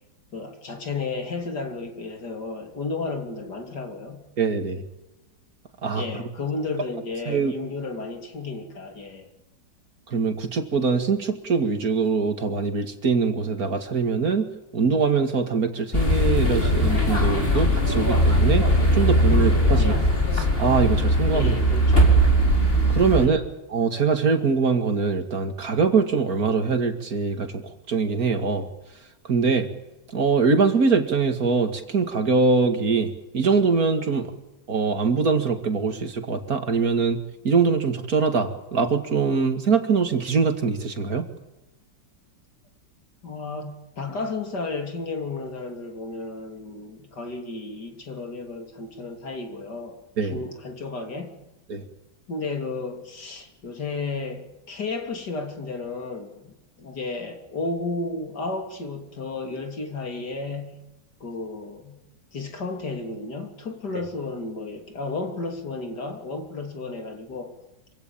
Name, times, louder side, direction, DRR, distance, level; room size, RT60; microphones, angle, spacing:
voice 1, 0.3-4.2 6.0-9.3 19.7-20.0 21.3-22.1 23.2-23.4 43.2-51.3 52.3-60.8 61.2-62.0 62.3-67.6, left 3 dB, 65° left, 3.8 m, -33 dB
voice 2, 4.4-4.8 5.8-6.1 7.3-7.5 10.1-18.7 18.9-19.9 20.3-21.5 22.9-23.4 23.7-28.7 29.2-29.7 30.1-34.3 34.7-37.2 37.4-41.3 50.2-50.4 51.7-51.8, right 5 dB, 50° right, 2.6 m, -23 dB
sound 1, 15.9-23.3, equal, 30° left, 4.6 m, -20 dB
26.0 x 16.5 x 8.8 m
omnidirectional pair, 2.0 m